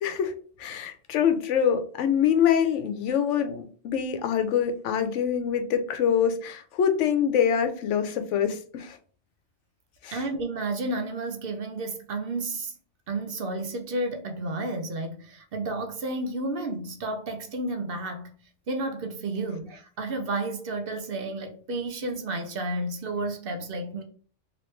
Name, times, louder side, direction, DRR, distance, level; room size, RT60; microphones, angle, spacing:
voice 1, 0.0-0.3 0.6-9.0 10.0-10.2, left 8 dB, 80° left, 0.9 m, -25 dB
voice 2, 10.1-12.8 13.1-18.3 18.7-24.0, right 2 dB, 60° right, 0.7 m, -31 dB
3.1 x 2.9 x 3.1 m
omnidirectional pair, 1.2 m